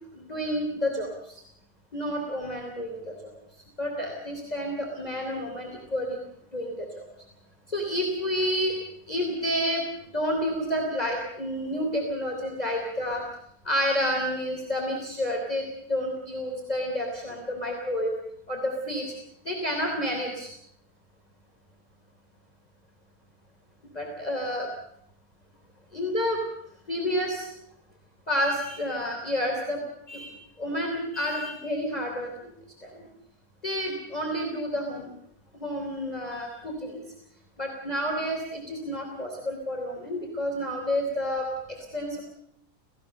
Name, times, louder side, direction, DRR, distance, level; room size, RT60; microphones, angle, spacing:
voice 1, 0.1-1.4 1.9-3.1 3.8-6.2 6.5-6.9 7.7-8.7 9.1-9.8 10.1-13.2 13.6-18.1 18.5-19.1 19.5-20.5 23.9-24.7 25.9-26.4 26.9-27.5 28.3-29.8 30.1-30.3 30.6-32.3 32.8-33.1 33.6-35.1 35.6-37.0 37.6-42.2, equal, 20° left, 0 dB, 3.5 m, -29 dB
29.5 x 17.0 x 6.7 m, 0.74 s
omnidirectional pair, 1.9 m